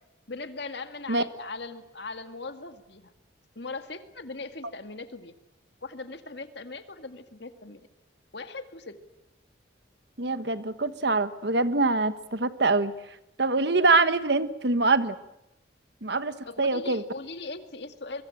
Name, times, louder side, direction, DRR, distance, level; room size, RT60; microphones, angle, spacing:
voice 1, 0.3-3.1 3.6-5.3 5.8-7.8 8.3-9.0 16.4-18.2, left 3 dB, 60° left, 9 dB, 2.0 m, -39 dB
voice 2, 10.2-12.9 13.4-15.1 16.0-17.0, right 3 dB, 55° right, 12 dB, 1.3 m, -24 dB
23.5 x 23.0 x 9.0 m, 0.89 s
head